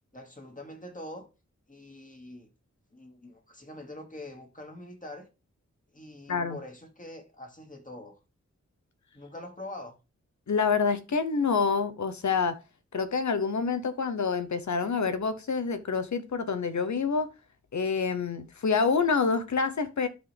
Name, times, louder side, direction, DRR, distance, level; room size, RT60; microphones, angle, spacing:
voice 1, 0.1-1.3 1.7-2.5 2.9-5.3 5.9-8.2 9.1-9.9, left 1 dB, 25° left, 2.3 m, -44 dB
voice 2, 10.5-12.6 12.9-17.3 17.7-20.1, left 5 dB, 70° left, 1.0 m, -27 dB
12.0 x 4.0 x 3.4 m
cardioid pair, 55°, 30 cm